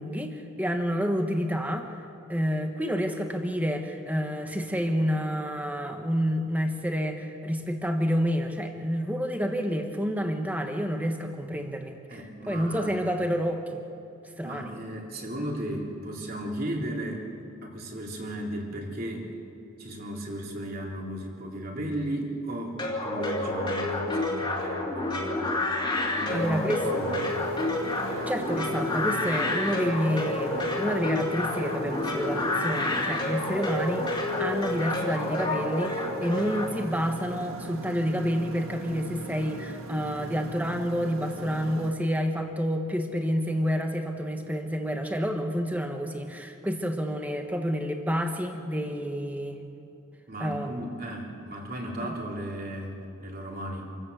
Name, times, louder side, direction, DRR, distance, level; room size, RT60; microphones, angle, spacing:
voice 1, 0.0-1.9 2.3-12.0 12.5-13.6 14.4-14.7 26.3-26.8 28.3-49.6 50.4-50.8 52.0-52.2, equal, 5° right, 4 dB, 1.4 m, -29 dB
voice 2, 12.1-13.0 14.4-17.3 17.6-19.3 19.8-25.7 26.1-27.2 50.3-53.9, right 1 dB, 45° right, -1 dB, 3.4 m, -35 dB
sound 1, 22.8-36.7, left 2 dB, 20° left, 2.7 m, -29 dB
Motorcycle, 26.3-41.9, right 1 dB, 85° right, 1.9 m, -38 dB
27.0 x 14.0 x 8.1 m, 2.8 s
head